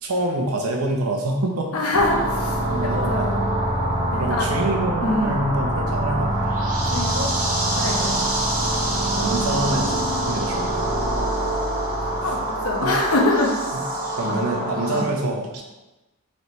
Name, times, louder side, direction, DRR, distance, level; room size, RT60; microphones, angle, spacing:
voice 1, 0.0-1.7 2.7-3.3 4.2-6.5 8.0-8.3 9.1-10.9 12.2-12.3 12.8-12.9 13.7-13.8 14.2-15.6, right 1 dB, 85° right, 1 dB, 0.7 m, -26 dB
voice 2, 1.7-3.3 4.1-4.5 5.0-5.3 6.9-7.3 7.8-8.2 12.0-13.7 14.2-14.4 14.9-15.0, left 2 dB, 80° left, -1 dB, 0.8 m, -24 dB
sound 1, 1.9-15.0, right 1 dB, 35° right, 0.7 m, -24 dB
4.1 x 3.3 x 3.1 m, 1.1 s
head